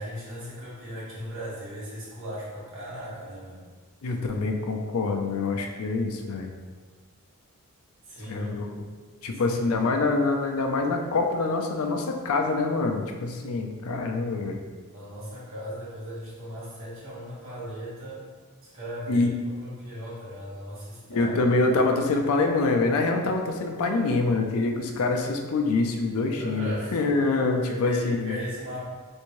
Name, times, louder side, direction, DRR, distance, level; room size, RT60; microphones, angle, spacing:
voice 1, 0.0-3.6 8.1-8.7 9.5-9.7 14.9-18.3 18.6-21.3 26.4-27.0 27.6-28.9, equal, 60° right, -7 dB, 1.3 m, -37 dB
voice 2, 4.0-6.5 8.2-8.7 9.2-14.6 19.1-19.3 21.1-28.4, left 3 dB, 70° left, 3 dB, 0.4 m, -25 dB
3.4 x 2.7 x 3.0 m, 1.5 s
head